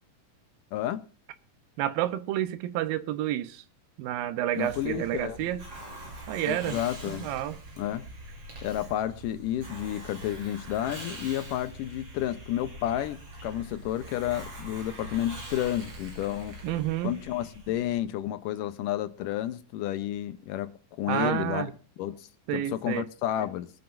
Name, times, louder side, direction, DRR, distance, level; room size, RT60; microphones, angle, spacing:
voice 1, 0.7-1.0 4.6-5.4 6.5-7.3 7.8-8.1 8.6-16.6 17.0-20.7 21.0-21.7 22.0-23.7, left 12 dB, 75° left, 2.2 m, -31 dB
voice 2, 1.8-3.6 4.0-5.7 6.3-6.8 7.1-7.6 16.6-17.2 21.1-21.7 22.5-23.1, right 13 dB, 80° right, 2.6 m, -30 dB
Hiss, 4.5-18.0, right 1 dB, 40° right, 5.1 m, -43 dB
23.5 x 9.2 x 2.5 m
omnidirectional pair, 4.1 m